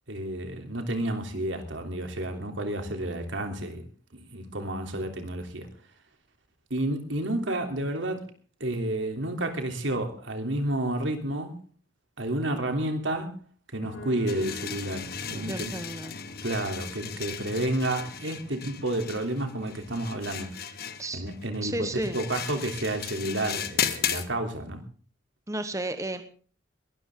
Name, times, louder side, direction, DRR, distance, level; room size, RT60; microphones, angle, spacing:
voice 1, 0.1-3.8 4.1-5.7 6.7-8.2 8.6-11.5 12.2-13.4 13.7-15.7 16.4-20.5 21.1-21.7 22.1-24.8, right 1 dB, 75° right, 3.3 m, -30 dB
sound 1, 13.8-23.8, left 1 dB, 85° left, 4.5 m, -47 dB
sound 2, 14.3-24.3, left 9 dB, 55° left, 1.4 m, -35 dB
voice 2, 15.4-16.1 21.0-21.2 21.6-22.2 25.5-26.2, right 1 dB, 15° right, 1.2 m, -32 dB
21.5 x 13.5 x 3.7 m
head